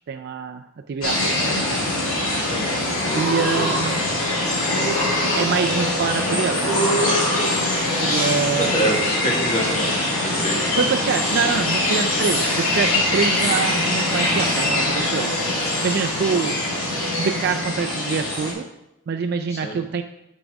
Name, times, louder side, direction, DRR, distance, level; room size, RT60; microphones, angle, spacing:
voice 1, 0.1-1.8 3.1-4.0 5.4-6.7 8.0-9.0 10.8-18.7 19.1-20.0, right 6 dB, 50° right, 5 dB, 0.3 m, -25 dB
sound 1, 1.0-18.5, left 1 dB, 75° left, 2.3 m, -23 dB
sound 2, 2.8-4.2 4.6-5.8 6.6-7.9, right 1 dB, 45° left, 2.3 m, -27 dB
voice 2, 8.6-10.8 16.3-16.4 19.5-19.8, right 1 dB, 30° left, 0 dB, 1.4 m, -26 dB
9.5 x 5.1 x 3.5 m, 0.89 s
head